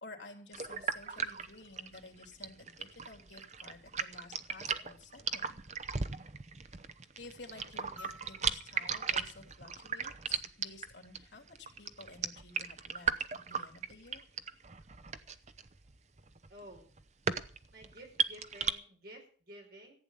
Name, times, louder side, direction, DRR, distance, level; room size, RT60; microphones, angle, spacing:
voice 1, 0.0-5.6 7.2-13.1 13.4-14.3, left 3 dB, 65° left, 2 dB, 3.2 m, -52 dB
sound 1, 0.5-18.7, right 6 dB, 35° right, 0.7 m, -37 dB
sound 2, 8.0-10.5 12.1-12.2, equal, 5° right, 4.3 m, -56 dB
voice 2, 16.5-16.8 17.7-19.9, right 1 dB, 50° right, 1 dB, 5.0 m, -52 dB
15.0 x 8.8 x 7.3 m, 0.43 s
head